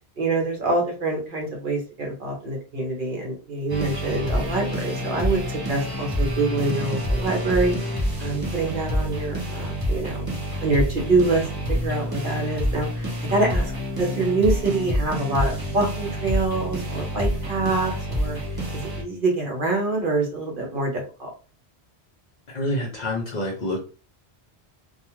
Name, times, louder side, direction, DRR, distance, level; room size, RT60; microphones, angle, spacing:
voice 1, 0.2-10.3 10.6-11.4 11.7-13.7 14.0-18.6 19.0-21.3, right 2 dB, 55° right, 0 dB, 0.9 m, -25 dB
sound 1, 3.7-19.0, equal, 25° right, 0.6 m, -27 dB
voice 2, 22.5-23.8, left 1 dB, 50° left, 0 dB, 0.6 m, -27 dB
2.3 x 2.3 x 2.9 m, 0.35 s
omnidirectional pair, 1.1 m